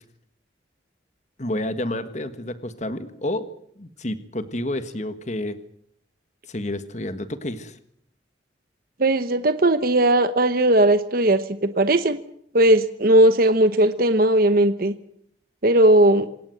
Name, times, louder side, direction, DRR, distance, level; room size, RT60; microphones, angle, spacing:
voice 1, 1.4-3.5 3.8-5.6 6.5-7.8, left 1 dB, 40° left, 11 dB, 1.5 m, -29 dB
voice 2, 9.0-12.2 12.5-14.9 15.6-16.3, right 1 dB, 50° right, 11 dB, 1.0 m, -18 dB
27.5 x 17.5 x 7.8 m, 0.70 s
head